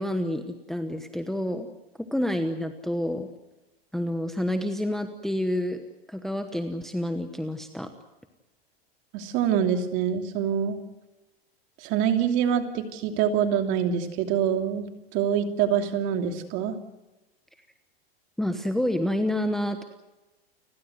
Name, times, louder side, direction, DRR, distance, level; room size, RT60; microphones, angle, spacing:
voice 1, 0.0-1.7 2.1-3.3 3.9-5.8 6.1-7.9 18.4-19.8, left 1 dB, ahead, 7 dB, 1.1 m, -28 dB
voice 2, 9.1-10.8 11.8-16.7, right 8 dB, 40° right, 6 dB, 2.9 m, -25 dB
30.0 x 16.0 x 7.9 m, 1.0 s
supercardioid pair, 150°, 31 cm